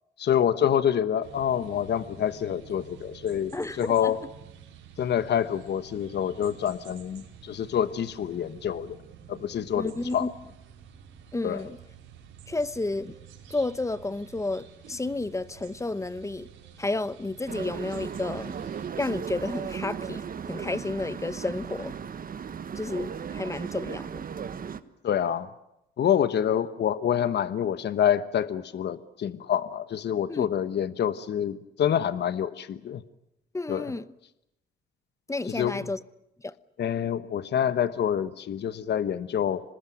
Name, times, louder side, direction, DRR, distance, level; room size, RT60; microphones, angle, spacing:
voice 1, 0.2-4.2 5.0-9.0 9.3-10.3 11.4-11.6 25.0-25.5 26.0-33.0 33.7-33.9 35.5-35.9 36.8-39.6, left 9 dB, 60° left, 1.2 m, -27 dB
sound 1, 1.2-18.9, right 7 dB, 80° right, 5.2 m, -50 dB
voice 2, 3.5-4.1 9.8-10.3 11.3-11.8 12.5-13.1 13.5-16.5 16.8-18.5 19.0-21.9 22.7-24.2 30.3-30.5 33.5-34.1 35.3-36.0 36.4-36.5, left 2 dB, 15° left, 1.0 m, -31 dB
sound 2, 17.5-24.8, right 7 dB, 45° right, 1.3 m, -36 dB
26.0 x 20.5 x 9.3 m
cardioid pair, 90°, 20 cm